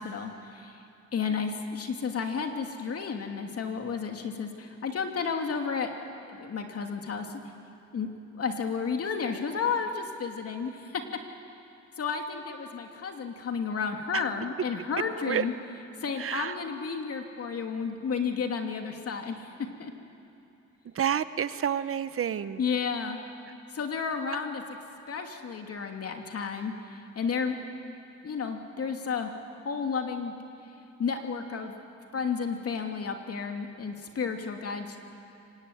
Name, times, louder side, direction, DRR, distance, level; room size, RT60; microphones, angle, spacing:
voice 1, 0.0-5.9 6.3-7.4 7.9-8.1 8.4-11.0 12.0-15.5 16.0-19.9 22.6-23.2 23.7-24.8 25.1-27.6 28.2-29.3 29.6-30.3 31.0-31.7 32.1-35.0, left 5 dB, 50° left, 4 dB, 2.8 m, -32 dB
voice 2, 16.2-16.5 21.0-22.6, right 9 dB, 45° right, 14 dB, 0.8 m, -29 dB
24.5 x 19.5 x 9.3 m, 2.7 s
cardioid pair, 90°, 30 cm